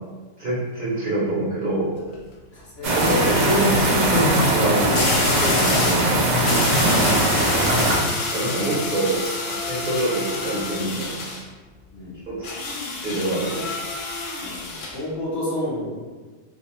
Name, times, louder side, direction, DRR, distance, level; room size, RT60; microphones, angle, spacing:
voice 1, 0.4-1.9 2.9-4.9 5.2-6.2 8.3-11.1 12.3-12.6 13.0-13.6, right 2 dB, 45° right, -8 dB, 0.8 m, -25 dB
sound 1, 1.8-2.1 4.9-6.1 6.4-11.4 12.4-15.0, left 3 dB, 70° left, 0.5 m, -28 dB
voice 2, 2.5-3.1 11.9-12.1 14.4-15.9, left 1 dB, 55° left, -7 dB, 1.0 m, -31 dB
sound 2, 2.8-8.0, right 1 dB, 65° right, 0.4 m, -20 dB
2.5 x 2.1 x 2.9 m, 1.4 s
omnidirectional pair, 1.4 m